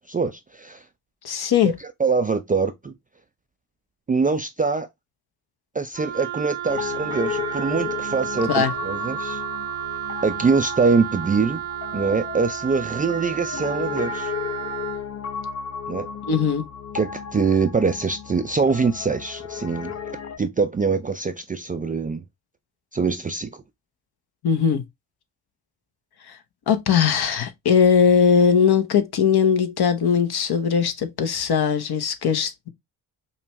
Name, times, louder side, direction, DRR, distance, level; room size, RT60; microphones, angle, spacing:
voice 1, 0.1-0.8 2.0-2.9 4.1-4.9 5.7-9.4 10.2-11.6 11.9-14.3 15.9-16.1 16.9-19.9 20.4-22.2 22.9-23.6, right 4 dB, 20° right, 0.4 m, -23 dB
voice 2, 1.2-1.7 8.5-8.7 16.3-16.7 24.4-24.8 26.3-26.4 26.7-32.7, left 7 dB, 50° left, 0.9 m, -20 dB
Wind instrument woodwind instrument, 5.9-15.0, right 11 dB, 75° right, 0.9 m, -32 dB
Piano, 6.7-20.4, left 7 dB, 35° left, 0.5 m, -34 dB
5.3 x 2.2 x 3.0 m
hypercardioid pair, 45°, 49 cm